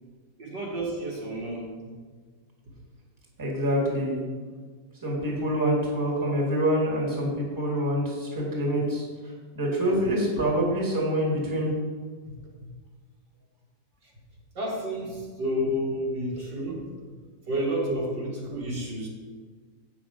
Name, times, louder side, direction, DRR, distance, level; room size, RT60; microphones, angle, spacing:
voice 1, 0.4-1.7 12.6-12.7 14.5-16.9 17.5-19.1, equal, 75° right, -4 dB, 2.6 m, -30 dB
voice 2, 3.4-4.2 5.0-9.0 9.6-11.7, equal, 10° right, -3 dB, 2.0 m, -26 dB
8.6 x 6.2 x 5.0 m, 1.5 s
omnidirectional pair, 1.9 m